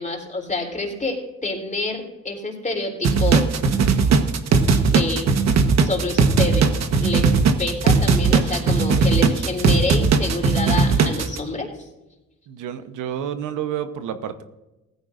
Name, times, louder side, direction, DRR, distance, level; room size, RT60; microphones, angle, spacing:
voice 1, 0.0-3.4 4.9-5.3 5.8-6.7 7.0-7.3 7.6-11.9, left 3 dB, 25° left, 2 dB, 3.5 m, -27 dB
sound 1, 3.0-11.4, right 4 dB, 60° right, 1.3 m, -18 dB
voice 2, 12.5-14.4, right 9 dB, 85° right, 10 dB, 1.0 m, -29 dB
16.5 x 14.5 x 2.5 m, 1.0 s
cardioid pair, 90°, 30 cm